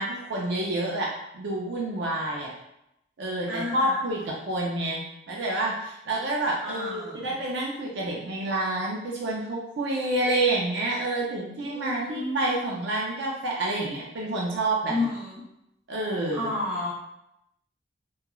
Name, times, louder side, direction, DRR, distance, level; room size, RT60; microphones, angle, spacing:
voice 1, 0.0-2.5 3.2-15.1 15.9-16.5, right 2 dB, 60° right, -3 dB, 0.4 m, -28 dB
voice 2, 3.5-3.9 6.6-7.4 11.6-12.4 14.9-15.4 16.3-16.9, left 2 dB, 5° right, -10 dB, 1.1 m, -31 dB
2.9 x 2.3 x 2.3 m, 0.83 s
head